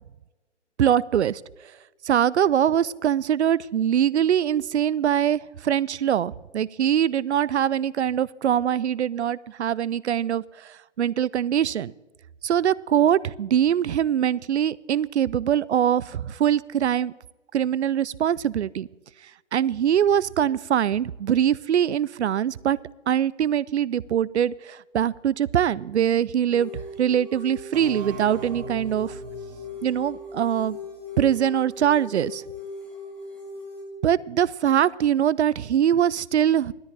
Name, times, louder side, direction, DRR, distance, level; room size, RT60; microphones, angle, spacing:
voice 1, 0.8-1.4 2.0-11.9 12.4-17.1 17.5-18.9 19.5-22.8 23.1-29.2 29.8-30.8 31.2-32.4 34.0-36.7, right 9 dB, 70° right, 21 dB, 0.5 m, -23 dB
sound 1, 26.5-33.8, left 3 dB, 5° left, 1.1 m, -39 dB
sound 2, 27.7-31.3, right 5 dB, 35° right, 1.9 m, -42 dB
17.0 x 13.0 x 3.3 m, 1.1 s
hypercardioid pair, 150°, 36 cm